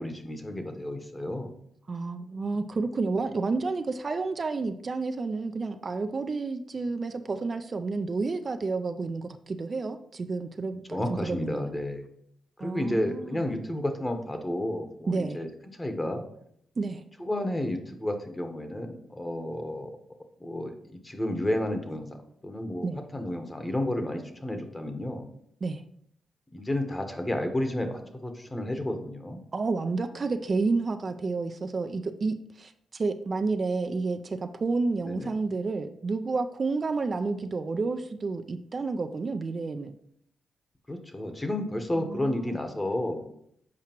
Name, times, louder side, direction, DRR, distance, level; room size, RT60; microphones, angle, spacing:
voice 1, 0.0-1.5 10.7-12.0 12.6-16.2 17.2-19.9 20.4-22.1 22.4-25.3 26.5-29.4 35.0-35.3 40.9-43.2, left 1 dB, 20° left, 6 dB, 1.1 m, -31 dB
voice 2, 1.9-11.7 12.6-13.4 15.1-15.4 16.8-17.0 22.8-23.0 25.6-25.8 29.5-40.0 42.0-42.5, right 3 dB, 45° right, 7 dB, 0.4 m, -30 dB
7.3 x 4.7 x 3.0 m, 0.70 s
cardioid pair, 70°, 0 cm